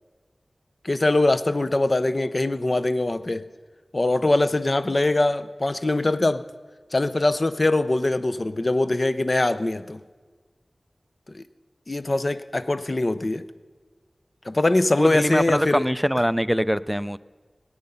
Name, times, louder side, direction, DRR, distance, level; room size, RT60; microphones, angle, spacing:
voice 1, 0.8-3.4 3.9-6.5 6.9-10.0 11.3-11.4 11.9-13.5 14.5-15.9, left 2 dB, 45° left, 13 dB, 0.6 m, -22 dB
voice 2, 15.0-17.2, equal, ahead, 16 dB, 0.4 m, -23 dB
19.5 x 8.7 x 5.6 m, 1.4 s
wide cardioid pair, 50°, 0 cm